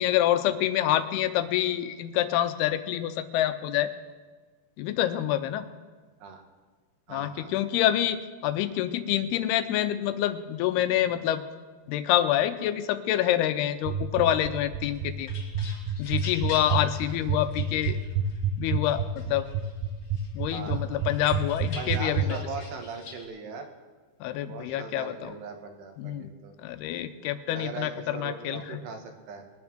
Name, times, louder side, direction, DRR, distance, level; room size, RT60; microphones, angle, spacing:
voice 1, 0.0-3.9 4.8-5.7 7.1-11.4 11.9-15.3 16.0-18.0 18.6-19.0 19.3-19.5 20.3-22.4 24.2-25.3 26.0-26.3 26.6-28.8, left 12 dB, 80° left, 11 dB, 2.7 m, -27 dB
voice 2, 7.1-7.7 20.5-21.4 21.8-23.7 24.5-26.5 27.5-29.4, right 5 dB, 90° right, 5 dB, 3.6 m, -40 dB
sound 1, 13.9-22.3, right 11 dB, 75° right, 2.7 m, -27 dB
sound 2, 14.8-18.4 18.8-19.7 20.1-23.2, left 4 dB, 40° left, 2.4 m, -45 dB
21.0 x 9.6 x 6.3 m, 1.4 s
omnidirectional pair, 4.6 m